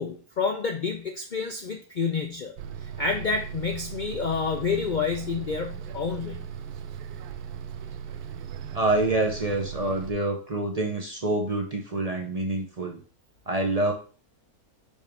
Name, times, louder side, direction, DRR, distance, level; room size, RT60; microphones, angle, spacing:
voice 1, 0.0-2.5 3.0-6.5, left 5 dB, 85° left, 4 dB, 0.4 m, -29 dB
Bus, 2.6-10.1, right 8 dB, 85° right, 1.1 m, -38 dB
voice 2, 8.7-13.0 13.5-13.9, right 2 dB, 35° right, 3 dB, 0.6 m, -26 dB
5.4 x 5.0 x 3.5 m, 0.38 s
omnidirectional pair, 1.6 m